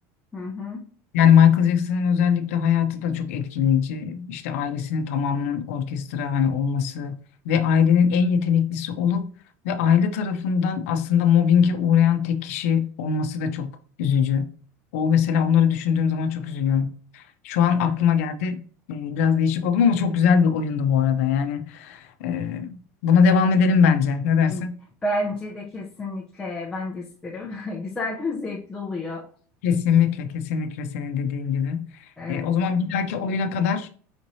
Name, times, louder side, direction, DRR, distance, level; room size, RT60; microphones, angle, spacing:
voice 1, 0.3-0.8 24.5-24.6 25.0-29.3 32.2-32.5, left 1 dB, 10° left, 0.6 m, -31 dB
voice 2, 1.1-7.2 7.4-9.3 9.6-13.7 14.0-14.5 14.9-18.6 18.9-24.8 29.6-31.8 32.3-33.9, left 7 dB, 90° left, 0.7 m, -21 dB
5.1 x 3.1 x 2.7 m
cardioid pair, 170°, 7 cm